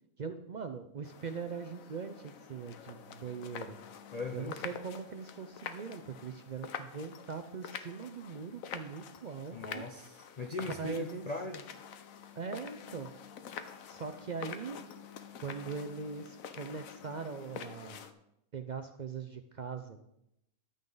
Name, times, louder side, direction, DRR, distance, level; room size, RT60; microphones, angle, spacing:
voice 1, 0.2-3.8 4.3-9.8 10.8-11.3 12.3-13.1 13.9-14.8 15.4-18.1 18.5-20.0, right 5 dB, 70° right, 8 dB, 0.4 m, -41 dB
sound 1, 1.0-18.1, left 7 dB, 70° left, 1.1 m, -47 dB
voice 2, 4.1-4.5 9.5-11.6, left 2 dB, 40° left, 3 dB, 0.6 m, -39 dB
11.0 x 9.1 x 3.9 m, 0.80 s
omnidirectional pair, 1.5 m